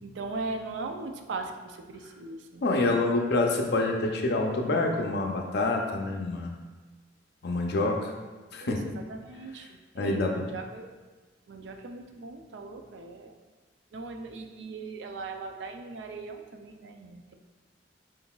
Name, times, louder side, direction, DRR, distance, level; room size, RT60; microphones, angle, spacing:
voice 1, 0.0-2.6 8.5-11.0 11.5-13.4 13.9-17.3, right 3 dB, 75° right, 5 dB, 0.4 m, -39 dB
voice 2, 2.6-6.5 7.4-8.1 8.5-8.8 9.9-10.3, left 2 dB, 60° left, 2 dB, 0.5 m, -27 dB
4.9 x 3.8 x 2.3 m, 1.3 s
head